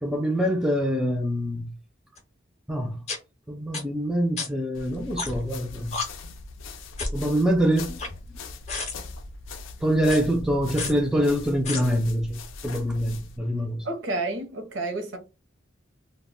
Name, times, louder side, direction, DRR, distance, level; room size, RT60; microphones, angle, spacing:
voice 1, 0.0-1.7 2.7-3.0 3.5-6.0 7.1-8.0 9.8-13.9, equal, 5° right, 0.3 m, -25 dB
sound 1, 2.2-2.3 3.1-3.2 3.7-3.8 4.4-4.5 5.2-5.5 5.9-6.0 7.0-7.2 7.8-8.4 8.7-8.9 10.0-10.2 10.8-10.9 11.6-11.8, left 3 dB, 35° left, 0.6 m, -30 dB
sound 2, 4.7-13.4, left 3 dB, 80° left, 0.4 m, -41 dB
voice 2, 13.8-15.2, right 2 dB, 70° right, 0.7 m, -30 dB
2.1 x 2.1 x 3.5 m
head